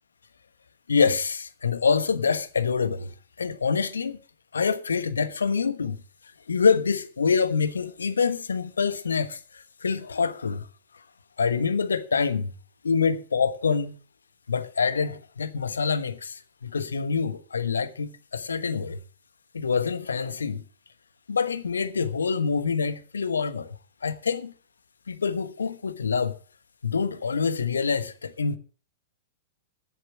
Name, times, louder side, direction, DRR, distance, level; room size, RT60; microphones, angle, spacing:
voice 1, 0.9-3.1 3.4-4.2 4.5-6.0 6.5-10.6 11.4-12.5 12.8-14.0 14.5-19.0 19.5-20.6 21.3-24.5 25.1-26.3 26.8-28.6, left 5 dB, 80° left, 1.2 m, -26 dB
11.0 x 8.0 x 7.4 m
figure-of-eight pair, 105°, 0 cm